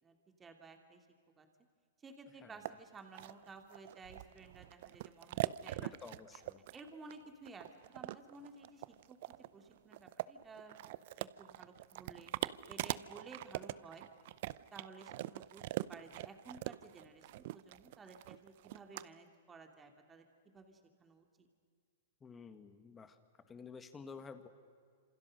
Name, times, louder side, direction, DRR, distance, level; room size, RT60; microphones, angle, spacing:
voice 1, 0.0-1.1 1.4-1.5 2.0-5.9 6.7-10.8 11.1-12.3 12.7-14.0 14.7-15.6 15.9-20.2 20.5-21.5, right 3 dB, 15° right, 4 dB, 2.9 m, -55 dB
sound 1, 2.6-2.7 3.1-19.0, right 16 dB, 55° right, 0.7 m, -42 dB
voice 2, 5.8-6.6 22.2-23.2 23.5-24.5, left 5 dB, 15° left, 9 dB, 1.9 m, -51 dB
28.0 x 27.0 x 6.6 m, 2.1 s
hypercardioid pair, 145°, 0 cm